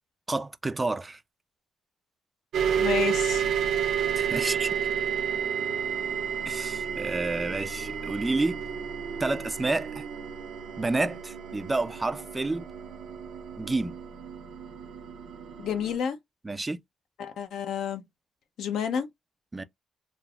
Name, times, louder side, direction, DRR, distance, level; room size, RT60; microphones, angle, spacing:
voice 1, 0.3-1.2 4.1-4.7 6.5-8.6 9.2-10.0 10.8-12.7 13.6-14.0 16.4-16.8 19.5-19.6, right 2 dB, 20° right, 0.3 m, -29 dB
sound 1, 2.5-16.0, right 8 dB, 75° right, 0.6 m, -31 dB
voice 2, 2.7-3.5 15.6-16.2 17.2-18.0 18.6-19.1, left 8 dB, 75° left, 0.6 m, -30 dB
3.2 x 2.0 x 2.3 m
cardioid pair, 90°, 0 cm